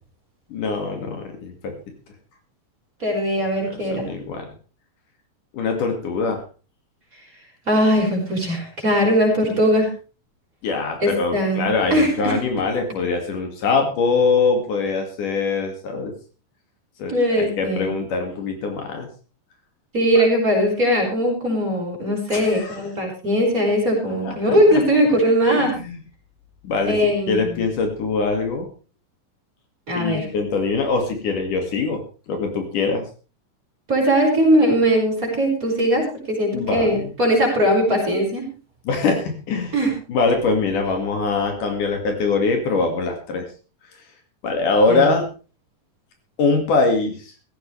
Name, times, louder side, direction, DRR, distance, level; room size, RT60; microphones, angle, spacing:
voice 1, 0.5-1.7 3.9-4.5 5.5-6.4 10.6-16.1 17.0-19.1 20.2-20.3 22.3-22.8 24.2-24.4 24.7-24.8 25.5-26.0 26.6-27.0 27.3-28.7 30.0-33.0 36.5-37.1 38.9-39.7 40.1-43.5 44.4-45.3 46.4-47.3, left 4 dB, 65° left, 3 dB, 3.6 m, -23 dB
voice 2, 3.0-4.1 7.7-9.9 11.0-12.6 17.1-17.9 19.9-25.8 26.8-27.6 29.9-30.3 33.9-38.5 39.7-39.9 44.9-45.1, equal, 25° right, -1 dB, 5.8 m, -20 dB
16.0 x 15.5 x 3.3 m, 0.35 s
omnidirectional pair, 4.0 m